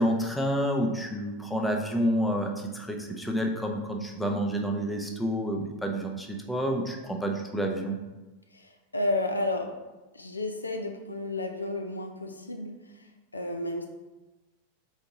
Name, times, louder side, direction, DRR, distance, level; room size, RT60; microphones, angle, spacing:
voice 1, 0.0-8.0, equal, 5° left, 1 dB, 0.6 m, -29 dB
voice 2, 8.5-9.7 10.1-13.9, left 2 dB, 80° left, 4 dB, 0.4 m, -32 dB
3.9 x 3.5 x 3.7 m, 1.1 s
figure-of-eight pair, 90°, 0 cm